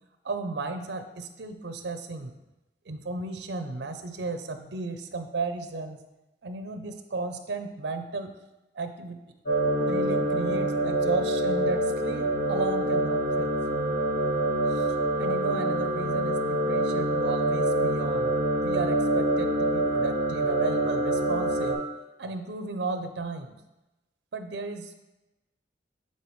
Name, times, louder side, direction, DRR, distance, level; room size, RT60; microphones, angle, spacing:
voice 1, 0.2-2.3 2.9-6.0 6.4-8.3 8.7-9.2 9.8-13.5 14.7-21.8 22.2-23.5 24.3-24.9, right 3 dB, 65° right, 7 dB, 0.5 m, -34 dB
sound 1, 9.5-21.7, right 1 dB, 50° left, 2.2 m, -26 dB
10.0 x 4.4 x 3.1 m, 1.0 s
head